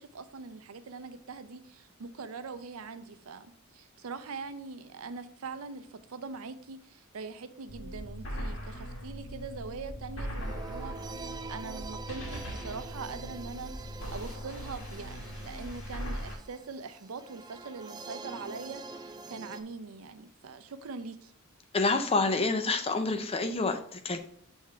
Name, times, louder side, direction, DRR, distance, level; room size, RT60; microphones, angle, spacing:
voice 1, 0.0-21.3, right 4 dB, 80° right, 11 dB, 0.5 m, -42 dB
sound 1, 7.7-16.4, equal, 65° left, 2.0 m, -40 dB
sound 2, 10.4-19.6, right 3 dB, 20° right, 0.3 m, -45 dB
voice 2, 21.7-24.2, left 3 dB, 30° left, 7 dB, 0.6 m, -28 dB
6.5 x 3.6 x 4.5 m, 0.63 s
head